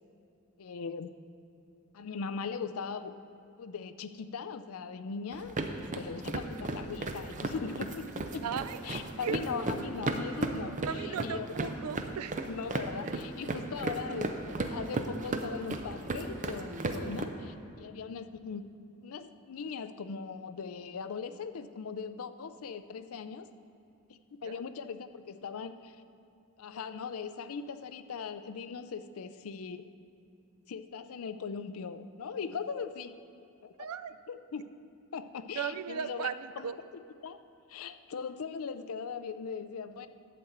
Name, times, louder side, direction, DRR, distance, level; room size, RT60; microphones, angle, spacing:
voice 1, 0.6-1.1 1.9-3.2 3.6-8.4 8.8-11.7 12.4-18.7 19.0-23.5 24.1-26.0 26.6-29.9 30.7-33.1 33.6-33.9 34.3-34.6 35.1-37.4 37.7-40.1, left 5 dB, 70° left, 11 dB, 0.5 m, -40 dB
sound 1, 5.3-17.2, right 2 dB, 35° right, 0.6 m, -35 dB
voice 2, 8.4-8.8 9.2-9.9 10.9-12.5 12.8-13.1 13.8-14.2 24.4-24.6 33.8-34.1 35.6-36.8, right 7 dB, 85° right, 13 dB, 0.4 m, -37 dB
11.5 x 4.3 x 7.9 m, 2.5 s
head